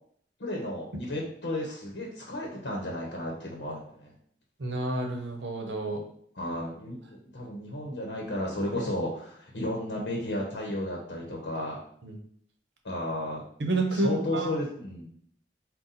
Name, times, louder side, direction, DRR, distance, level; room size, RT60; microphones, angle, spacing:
voice 1, 0.4-4.1 6.3-11.8 12.8-13.5 13.9-15.1, left 1 dB, 75° left, -2 dB, 0.8 m, -33 dB
voice 2, 4.6-6.0 12.0-12.1 13.6-14.5, right 2 dB, 80° right, 3 dB, 0.8 m, -29 dB
4.0 x 2.2 x 4.0 m, 0.62 s
head